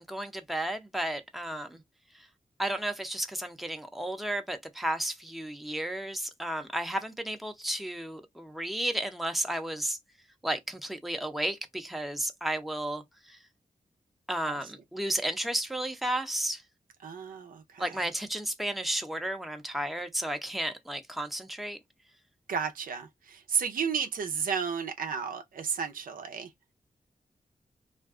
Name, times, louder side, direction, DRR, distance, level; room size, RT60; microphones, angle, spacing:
voice 1, 0.0-1.8 2.6-10.0 10.4-13.4 14.3-16.6 17.8-21.8, right 1 dB, ahead, 0.6 m, -33 dB
voice 2, 17.0-18.0 22.5-26.5, right 6 dB, 80° right, 0.5 m, -33 dB
2.5 x 2.2 x 3.5 m
cardioid pair, 65°, 14 cm